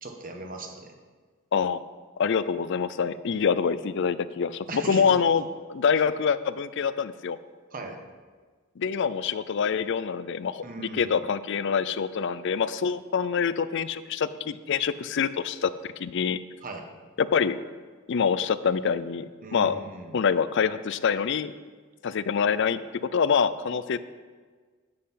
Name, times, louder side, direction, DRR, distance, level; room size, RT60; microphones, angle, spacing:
voice 1, 0.0-0.9 4.7-5.1 7.7-8.0 10.6-11.3 16.6-16.9 19.4-20.2, right 2 dB, 40° right, 3 dB, 1.3 m, -38 dB
voice 2, 1.5-1.8 2.2-5.4 5.7-7.4 8.8-16.4 17.2-17.6 18.1-19.8 20.1-21.5 22.0-22.8 23.1-24.0, left 6 dB, 60° left, 15 dB, 0.4 m, -25 dB
10.0 x 7.8 x 5.7 m, 1.5 s
head